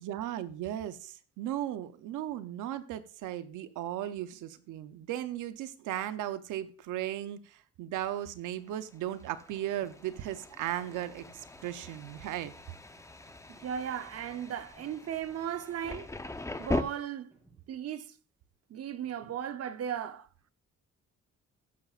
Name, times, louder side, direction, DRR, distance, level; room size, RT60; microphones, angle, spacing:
voice 1, 0.0-12.5, right 12 dB, 90° right, 0.7 m, -36 dB
Thunder, 8.7-16.8, left 2 dB, 10° left, 0.7 m, -40 dB
sound 1, 9.8-10.3 11.2-11.7 12.5-13.1 13.6-14.0 14.8-15.3 16.3-16.8 17.3-17.9 19.0-19.6, right 2 dB, 10° right, 5.2 m, -64 dB
voice 2, 13.5-16.1 16.6-17.3 17.7-18.1 18.7-20.5, right 9 dB, 55° right, 0.8 m, -36 dB
15.5 x 7.1 x 2.5 m
cardioid pair, 90°, 30 cm